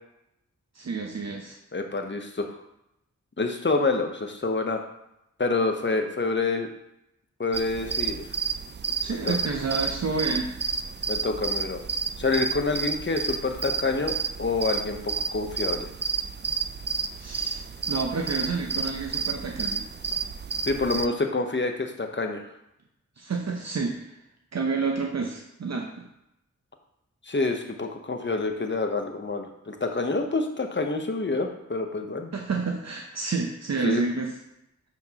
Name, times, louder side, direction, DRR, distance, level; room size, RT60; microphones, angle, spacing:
voice 1, 0.7-1.6 9.0-10.5 17.2-19.8 23.2-24.1 24.5-26.1 32.3-34.3, right 4 dB, 60° right, 1 dB, 0.8 m, -29 dB
voice 2, 1.7-2.5 3.4-4.8 5.4-6.7 7.4-8.2 9.1-9.4 11.1-11.8 12.2-14.1 14.4-15.9 20.7-22.4 27.3-32.3 33.8-34.0, left 3 dB, 35° left, 5 dB, 0.9 m, -27 dB
sound 1, 7.5-21.1, right 5 dB, 35° right, 0.4 m, -31 dB
9.5 x 4.5 x 2.9 m, 0.83 s
cardioid pair, 45°, 31 cm